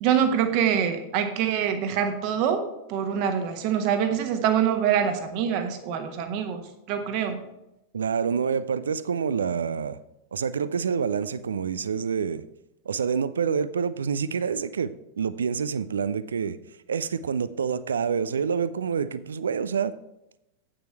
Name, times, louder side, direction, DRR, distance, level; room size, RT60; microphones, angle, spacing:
voice 1, 0.0-6.6 6.9-7.4, right 8 dB, 45° right, 7 dB, 1.2 m, -25 dB
voice 2, 7.9-10.0 10.3-12.4 12.9-16.6 16.9-19.9, right 6 dB, 70° right, 16 dB, 0.4 m, -27 dB
8.5 x 7.5 x 4.5 m, 0.89 s
figure-of-eight pair, 90°, 0 cm